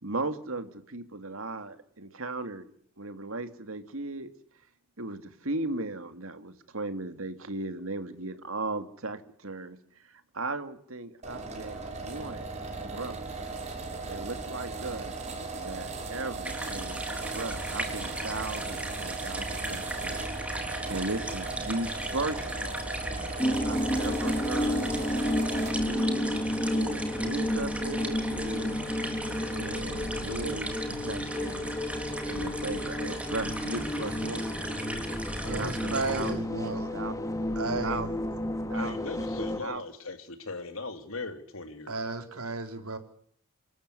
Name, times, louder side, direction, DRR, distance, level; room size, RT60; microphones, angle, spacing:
voice 1, 0.0-2.7 3.0-4.3 5.0-12.5 12.8-13.2 14.0-15.1 15.6-17.0 17.3-22.8 23.6-25.2 25.8-28.7 29.5-31.7 32.2-34.5 35.5-37.1 37.8-38.1 38.7-39.0 39.6-39.8, right 2 dB, 70° right, 9 dB, 2.6 m, -37 dB
sound 1, 11.2-25.9, right 3 dB, 30° right, 6.4 m, -37 dB
sound 2, 16.4-36.3, right 1 dB, 5° right, 3.7 m, -37 dB
sound 3, 23.4-39.6, left 1 dB, 15° left, 2.6 m, -31 dB
voice 2, 35.4-36.9 37.6-38.1 41.9-43.0, right 3 dB, 85° right, 6 dB, 4.0 m, -33 dB
voice 3, 38.7-42.0, left 3 dB, 70° left, 7 dB, 3.4 m, -39 dB
27.0 x 13.5 x 9.9 m, 0.64 s
head